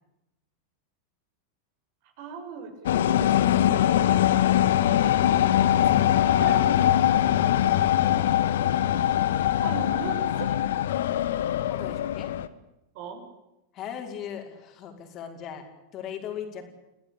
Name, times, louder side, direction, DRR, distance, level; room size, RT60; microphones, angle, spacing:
voice 1, 2.2-3.1 3.9-4.7 6.3-6.7 7.4-8.2 9.6-10.6 12.9-13.2, right 5 dB, 50° right, 5 dB, 6.6 m, -39 dB
sound 1, 2.8-12.5, left 11 dB, 60° left, 1.4 m, -22 dB
voice 2, 5.6-6.4 11.6-12.3 13.7-15.7 15.9-16.7, left 8 dB, 35° left, 3 dB, 5.6 m, -39 dB
29.5 x 18.0 x 8.9 m, 0.92 s
figure-of-eight pair, 90°, 0 cm